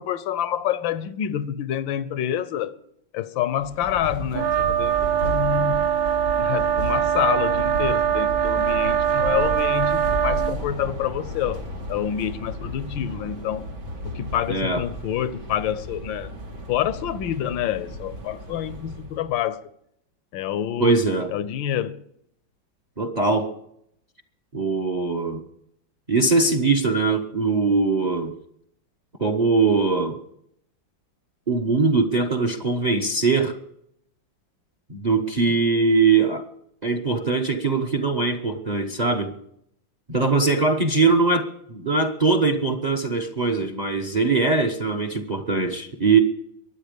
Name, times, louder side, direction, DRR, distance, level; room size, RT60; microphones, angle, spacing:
voice 1, 0.0-2.8 3.1-5.9 6.4-13.7 14.0-16.3 16.7-19.6 20.3-21.0 21.3-22.0, left 10 dB, 75° left, 1.4 m, -27 dB
sound 1, 3.6-19.3, equal, 80° right, 3.6 m, -34 dB
sound 2, 4.3-10.6, right 9 dB, 65° right, 1.5 m, -22 dB
voice 2, 14.5-14.8 20.8-21.3 23.0-23.5 24.5-25.4 26.1-28.3 29.2-30.2 31.5-33.6 34.9-36.5 36.8-39.3 40.1-46.2, right 4 dB, 35° right, 0.7 m, -21 dB
23.0 x 8.6 x 5.2 m
omnidirectional pair, 2.1 m